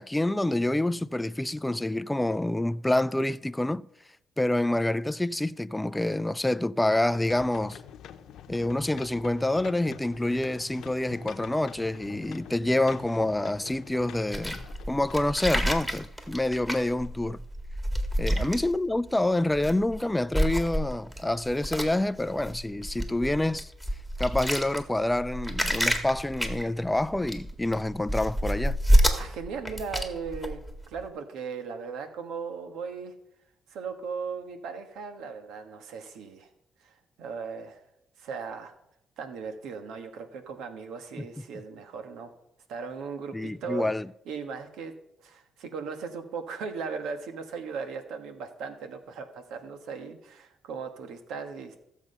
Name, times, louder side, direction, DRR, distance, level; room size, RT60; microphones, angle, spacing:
voice 1, 0.0-3.9 4.4-7.8 8.5-14.6 14.9-17.4 18.2-23.7 24.2-28.8 43.3-44.1, left 1 dB, 10° left, 0.4 m, -27 dB
sound 1, 7.1-17.4 18.0-18.1, left 8 dB, 80° left, 0.9 m, -47 dB
sound 2, 14.3-19.1 19.5-20.0 20.3-31.0, equal, 10° right, 1.9 m, -28 dB
voice 2, 29.2-30.6 30.9-33.1 33.7-36.5 36.8-37.8 38.2-38.7 39.2-42.3 42.7-43.9 44.3-44.9 45.2-51.8, right 5 dB, 85° right, 1.4 m, -37 dB
15.5 x 7.3 x 5.5 m
cardioid pair, 90°, 0 cm